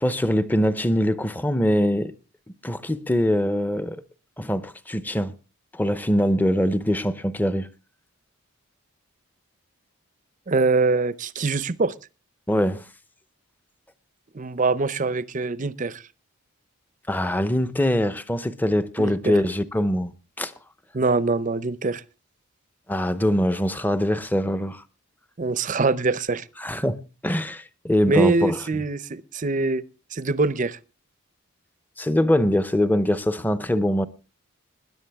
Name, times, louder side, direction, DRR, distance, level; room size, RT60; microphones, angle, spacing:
voice 1, 0.0-2.1 2.6-4.0 4.4-5.3 5.7-7.7 12.5-12.8 17.1-20.1 20.4-20.5 22.9-24.8 26.6-28.6 32.0-34.1, equal, 10° left, 0.6 m, -23 dB
voice 2, 10.5-11.9 14.3-16.0 19.0-19.4 20.9-22.0 25.4-26.4 28.1-29.8 30.1-30.8, right 3 dB, 35° right, 0.6 m, -23 dB
20.5 x 10.5 x 3.5 m
head